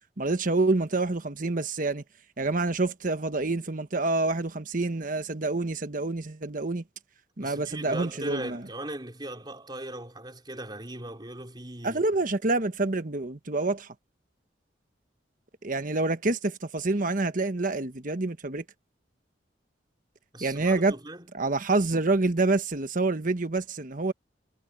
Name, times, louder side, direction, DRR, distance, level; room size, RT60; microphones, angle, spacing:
voice 1, 0.2-2.0 2.4-6.8 7.4-8.6 11.8-13.9 15.6-18.6 20.4-20.9 21.3-24.1, right 2 dB, 50° right, 1.2 m, -27 dB
voice 2, 7.4-12.0 20.3-21.3, right 1 dB, 25° right, 4.5 m, -39 dB
head